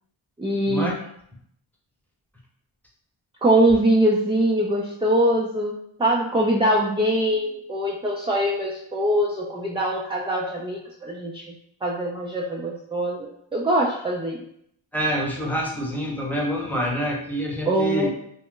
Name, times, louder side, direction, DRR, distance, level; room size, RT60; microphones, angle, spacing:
voice 1, 0.4-0.9 3.4-11.5 11.8-14.4 17.7-18.1, right 1 dB, 15° right, -2 dB, 0.3 m, -23 dB
voice 2, 14.9-18.1, equal, 5° left, -3 dB, 0.8 m, -26 dB
2.4 x 2.1 x 3.7 m, 0.71 s
cardioid pair, 60°, 50 cm